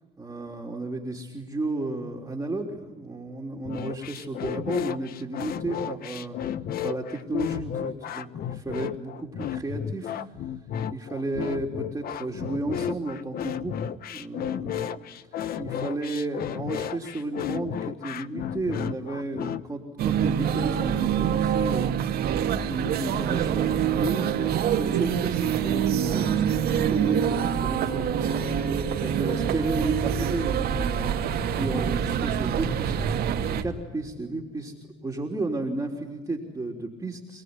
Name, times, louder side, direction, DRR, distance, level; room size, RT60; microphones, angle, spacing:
voice 1, 0.2-6.4 6.8-10.5 10.9-15.1 15.3-31.3 31.6-33.3 33.6-34.7 35.0-37.4, right 2 dB, 15° right, -1 dB, 3.4 m, -33 dB
sound 1, 3.6-19.6, left 9 dB, 65° left, 1.1 m, -32 dB
sound 2, 20.0-33.6, right 8 dB, 70° right, 2.4 m, -25 dB
28.0 x 19.0 x 9.7 m, 1.3 s
cardioid pair, 110°, 17 cm